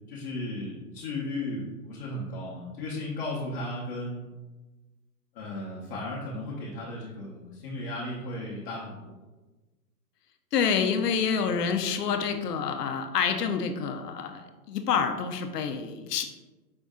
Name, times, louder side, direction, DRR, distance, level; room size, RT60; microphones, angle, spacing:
voice 1, 0.1-4.2 5.3-9.2, left 1 dB, 35° left, -6 dB, 0.8 m, -35 dB
voice 2, 10.5-16.2, left 6 dB, 80° left, 6 dB, 0.7 m, -27 dB
5.3 x 2.6 x 3.5 m, 1.2 s
hypercardioid pair, 150°, 47 cm